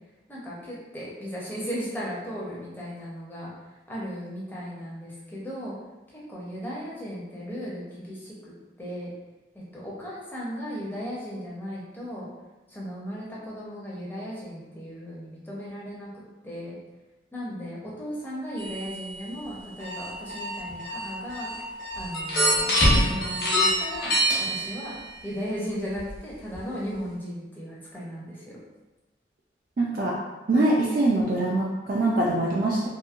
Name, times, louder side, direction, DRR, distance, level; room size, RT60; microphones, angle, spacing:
voice 1, 0.3-3.5 3.9-5.7 6.1-8.5 8.8-9.1 9.5-12.3 12.7-16.1 16.4-16.8 17.3-21.5 22.0-24.1 24.4-24.9 25.2-28.6, equal, 10° left, -6 dB, 0.6 m, -36 dB
sound 1, 18.6-19.1 20.7-20.8 22.1-25.1 26.0-26.1 26.5-26.6, equal, 50° left, 0.9 m, -24 dB
Alarm, 19.8-24.5, equal, 75° right, 1.0 m, -36 dB
voice 2, 29.8-30.2 30.5-32.9, right 2 dB, 50° right, -4 dB, 0.3 m, -23 dB
2.9 x 2.6 x 2.4 m, 1.1 s
head